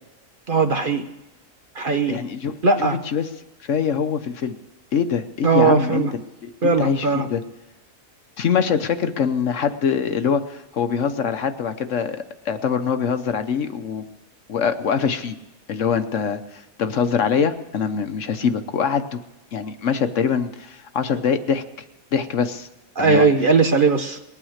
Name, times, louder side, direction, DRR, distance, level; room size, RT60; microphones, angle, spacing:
voice 1, 0.5-1.0 1.7-2.2 2.6-3.0 5.4-6.1 6.6-7.3 23.0-24.2, right 4 dB, 45° right, 7 dB, 0.9 m, -18 dB
voice 2, 2.1-3.3 3.6-4.5 4.9-6.1 6.4-7.4 8.4-14.0 14.5-15.4 15.7-19.2 19.5-21.6 22.1-22.7 23.0-23.3, left 6 dB, 60° left, 9 dB, 1.1 m, -23 dB
20.0 x 9.1 x 6.4 m, 1.0 s
omnidirectional pair, 1.5 m